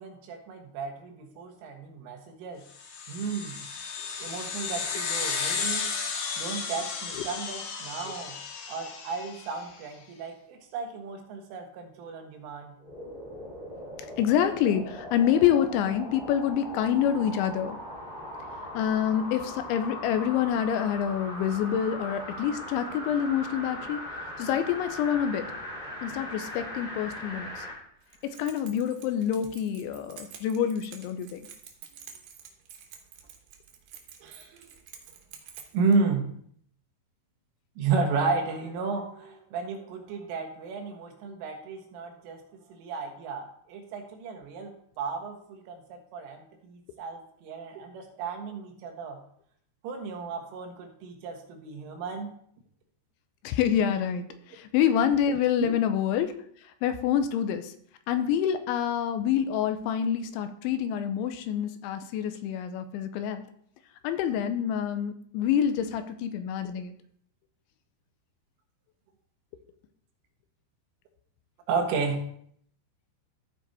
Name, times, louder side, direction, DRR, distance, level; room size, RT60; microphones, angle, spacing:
voice 1, 0.0-2.6 3.1-3.6 4.2-5.9 6.4-8.4 8.7-12.8 35.7-36.3 37.8-42.4 42.7-49.2 49.8-52.3 55.6-55.7 71.7-72.3, right 4 dB, 85° right, 3 dB, 4.0 m, -33 dB
sound 1, 2.8-9.6, left 5 dB, 65° left, 2.8 m, -33 dB
sound 2, 12.8-27.8 28.2-28.3, left 1 dB, 25° left, 1.1 m, -39 dB
voice 2, 14.2-17.8 18.7-24.0 24.4-25.5 26.0-27.7 28.2-31.4 53.4-56.3 56.8-57.7 58.1-63.4 64.0-66.9, left 9 dB, 80° left, 9 dB, 3.0 m, -27 dB
Keys jangling, 28.0-36.0, right 7 dB, 70° right, 2.8 m, -49 dB
14.5 x 5.1 x 4.1 m, 0.64 s
omnidirectional pair, 5.5 m